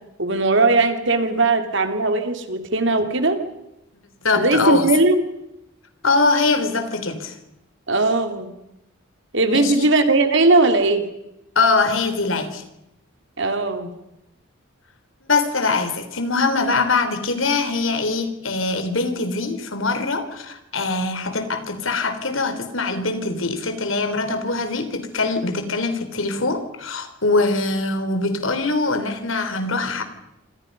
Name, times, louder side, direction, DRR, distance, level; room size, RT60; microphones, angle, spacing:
voice 1, 0.2-3.4 4.4-5.2 7.9-8.5 9.3-11.0 13.4-13.9, right 2 dB, 60° right, 7 dB, 3.1 m, -18 dB
voice 2, 4.2-4.9 6.0-7.4 9.5-9.9 11.6-12.6 15.3-30.0, left 3 dB, 75° left, 9 dB, 3.5 m, -22 dB
27.5 x 26.0 x 5.5 m, 0.87 s
head